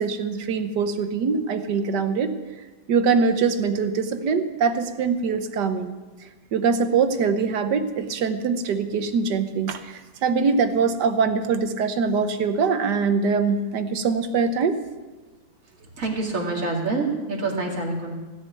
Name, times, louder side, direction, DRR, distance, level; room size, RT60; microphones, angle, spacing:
voice 1, 0.0-2.4 2.9-5.9 6.5-14.8, right 5 dB, 65° right, 9 dB, 1.5 m, -23 dB
voice 2, 16.0-18.1, right 3 dB, 45° right, -1 dB, 2.8 m, -26 dB
17.0 x 6.6 x 9.4 m, 1.3 s
omnidirectional pair, 2.1 m